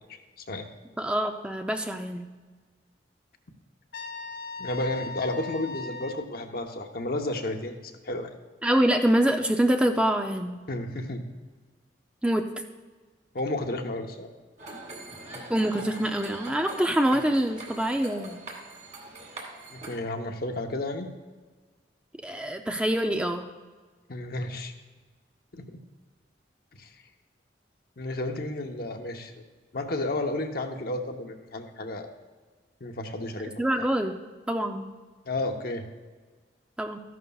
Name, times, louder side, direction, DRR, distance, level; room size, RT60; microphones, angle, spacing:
voice 1, 0.4-0.7 4.6-8.3 10.7-11.2 13.3-14.3 19.7-21.1 24.1-24.7 25.5-25.7 26.8-26.9 28.0-29.4 29.7-32.1 32.8-33.6 35.2-35.8, left 2 dB, 55° left, 4 dB, 0.9 m, -32 dB
voice 2, 1.0-2.3 8.6-10.6 12.2-12.4 15.5-18.4 22.2-23.5 33.6-34.2 34.5-34.9 36.8-37.0, right 1 dB, 5° right, 5 dB, 0.4 m, -25 dB
Trumpet, 3.9-6.2, left 3 dB, 85° left, 0.9 m, -38 dB
sound 1, 14.6-20.0, right 2 dB, 40° right, 2.0 m, -42 dB
13.5 x 11.0 x 2.3 m, 1.4 s
head